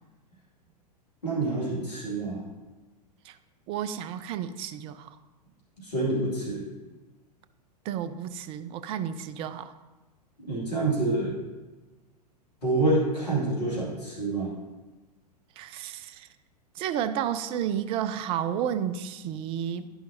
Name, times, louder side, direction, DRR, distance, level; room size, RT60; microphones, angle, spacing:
voice 1, 1.2-2.4 5.8-6.6 10.5-11.3 12.6-14.5, right 2 dB, 75° left, -5 dB, 2.3 m, -27 dB
voice 2, 3.7-5.2 7.8-9.7 15.6-16.3 16.8-19.9, right 9 dB, 25° right, 11 dB, 0.4 m, -31 dB
11.5 x 5.6 x 2.8 m, 1.2 s
figure-of-eight pair, 95°, 21 cm